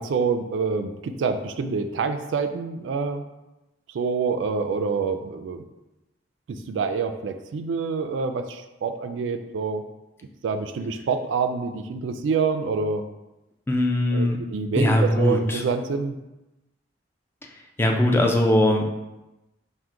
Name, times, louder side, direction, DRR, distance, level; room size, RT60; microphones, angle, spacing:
voice 1, 0.0-3.2 3.9-5.6 6.7-9.8 10.4-13.0 14.1-16.2, right 5 dB, 80° right, 8 dB, 0.3 m, -26 dB
voice 2, 13.7-14.4 14.8-15.6 17.8-18.8, left 1 dB, 15° left, 1 dB, 0.4 m, -20 dB
4.5 x 2.1 x 3.7 m, 1.0 s
head